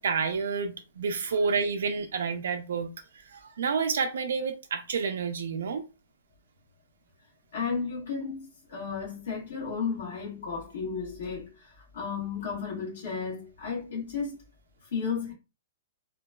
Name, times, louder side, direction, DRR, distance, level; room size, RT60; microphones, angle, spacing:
voice 1, 0.0-5.8, right 5 dB, 75° right, 0.3 m, -29 dB
voice 2, 7.5-14.4 14.8-15.3, left 5 dB, 65° left, 1.4 m, -33 dB
2.9 x 2.2 x 2.2 m
hypercardioid pair, 180°, 0 cm